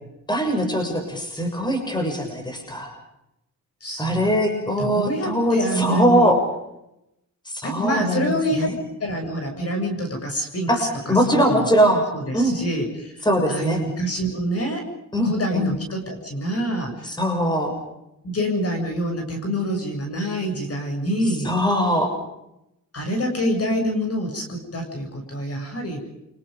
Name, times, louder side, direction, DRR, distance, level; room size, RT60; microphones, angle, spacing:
voice 1, 0.3-2.9 4.0-6.4 7.5-8.8 10.7-12.0 12.3-12.6 13.2-13.8 15.1-15.7 17.0-17.7 21.4-22.1, equal, 15° left, 3 dB, 7.0 m, -21 dB
voice 2, 3.8-4.2 4.8-6.3 7.6-8.7 9.0-11.7 12.1-13.1 13.5-14.8 15.2-17.1 18.2-21.5 22.9-26.0, equal, 45° left, 3 dB, 7.5 m, -26 dB
29.5 x 26.0 x 5.3 m, 0.85 s
wide cardioid pair, 135°, 33 cm